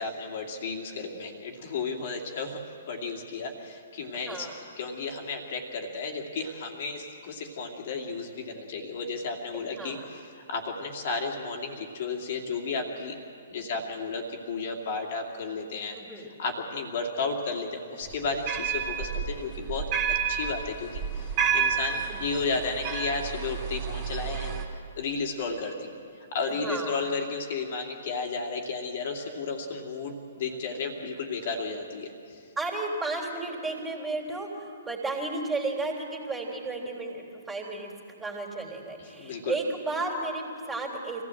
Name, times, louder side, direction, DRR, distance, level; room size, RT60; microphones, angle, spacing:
voice 1, 0.0-2.6 2.9-4.5 4.8-10.2 10.5-13.2 13.5-24.6 25.0-25.9 26.3-32.1 39.1-39.5, left 4 dB, 50° left, 0 dB, 2.6 m, -33 dB
voice 2, 4.1-4.5 9.5-10.0 13.6-13.8 15.9-16.3 21.9-22.2 26.5-27.0 32.6-37.9 38.2-41.2, right 2 dB, 10° right, 0 dB, 3.5 m, -33 dB
sound 1, 18.1-24.6, right 7 dB, 30° right, 2.8 m, -30 dB
25.0 x 16.0 x 7.8 m, 2.5 s
figure-of-eight pair, 125°, 0 cm